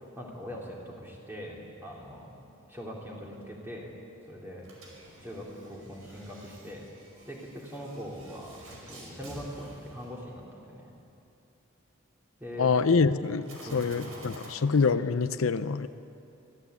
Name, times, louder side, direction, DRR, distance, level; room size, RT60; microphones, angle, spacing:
voice 1, 0.0-2.3 2.7-3.9 4.3-4.7 5.2-6.9 7.3-10.4 10.7-10.9 12.4-12.7 13.6-14.2, equal, 10° right, -3 dB, 3.5 m, -42 dB
sound 1, 4.6-10.8 13.4-14.5, right 1 dB, 75° right, 5.0 m, -50 dB
voice 2, 12.6-15.9, left 4 dB, 80° left, 12 dB, 0.6 m, -25 dB
24.5 x 15.5 x 8.3 m, 2.8 s
head